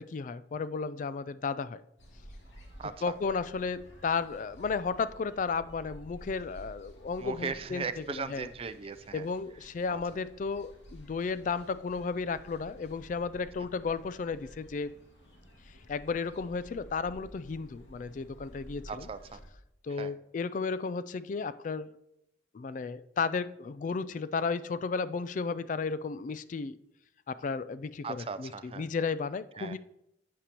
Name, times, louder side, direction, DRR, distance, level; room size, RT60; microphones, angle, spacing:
voice 1, 0.0-1.8 3.0-8.5 9.1-15.0 15.9-19.1 19.8-21.9 22.5-26.8 27.3-29.8, left 4 dB, 45° left, 15 dB, 0.3 m, -33 dB
sound 1, 2.0-19.5, equal, 85° left, 2.3 m, -52 dB
voice 2, 2.8-3.1 7.2-9.3 9.9-10.0 18.9-19.4 19.9-20.1 28.0-28.9 29.6-29.8, right 5 dB, 30° right, 12 dB, 0.4 m, -38 dB
11.0 x 8.3 x 2.9 m, 0.82 s
head